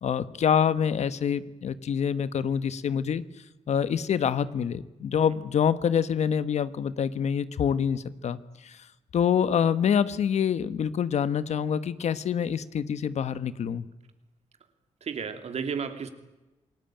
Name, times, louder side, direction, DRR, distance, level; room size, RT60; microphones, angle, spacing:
voice 1, 0.0-3.2 3.7-8.8 9.1-13.8, left 8 dB, 75° left, 15 dB, 1.3 m, -26 dB
voice 2, 15.0-16.1, right 6 dB, 65° right, 8 dB, 2.8 m, -33 dB
27.5 x 19.5 x 9.1 m, 1.1 s
cardioid pair, 100°, 12 cm